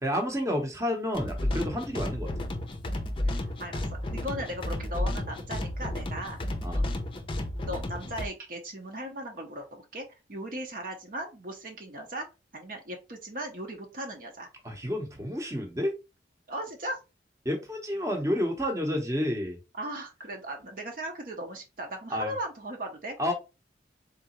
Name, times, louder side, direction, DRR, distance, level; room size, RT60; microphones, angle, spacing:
voice 1, 0.0-2.3 6.6-6.8 14.6-15.9 17.4-19.6 22.1-22.3 23.2-23.3, equal, 15° right, 0.9 m, -30 dB
sound 1, 1.1-8.3, left 1 dB, 30° left, 0.6 m, -32 dB
voice 2, 3.2-6.4 6.7-7.0 7.5-12.3 12.5-14.5 16.5-17.0 19.8-23.2, right 1 dB, 50° right, 0.8 m, -38 dB
3.9 x 3.3 x 3.0 m
head